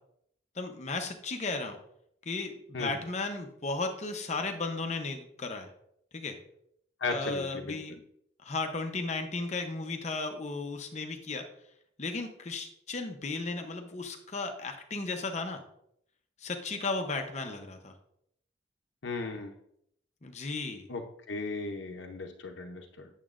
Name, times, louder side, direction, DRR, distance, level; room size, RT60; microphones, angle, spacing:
voice 1, 0.6-1.8 2.3-5.7 6.1-6.4 7.1-8.0 8.4-11.4 12.0-15.6 16.4-17.9 20.2-20.9, left 3 dB, 40° left, 5 dB, 0.7 m, -35 dB
voice 2, 7.0-7.8 19.0-19.5 20.9-21.0 21.3-23.1, left 3 dB, 85° left, 3 dB, 0.7 m, -36 dB
8.9 x 7.2 x 2.5 m, 0.72 s
head